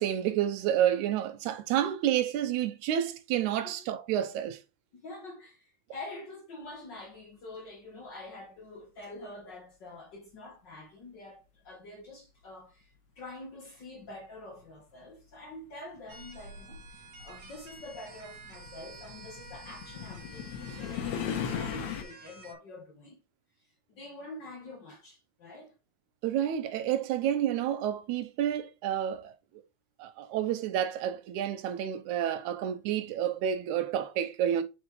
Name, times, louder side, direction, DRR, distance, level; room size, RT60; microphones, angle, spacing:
voice 1, 0.0-4.6 26.2-29.3 30.0-34.6, right 10 dB, 85° right, 2.2 m, -29 dB
voice 2, 4.9-23.2 23.9-25.7, left 2 dB, 55° left, 1.4 m, -46 dB
sound 1, 14.8-14.9 15.9-22.0, left 8 dB, 85° left, 2.5 m, -38 dB
sound 2, 16.1-22.5, right 1 dB, 65° right, 2.2 m, -49 dB
5.9 x 5.4 x 3.1 m
omnidirectional pair, 3.3 m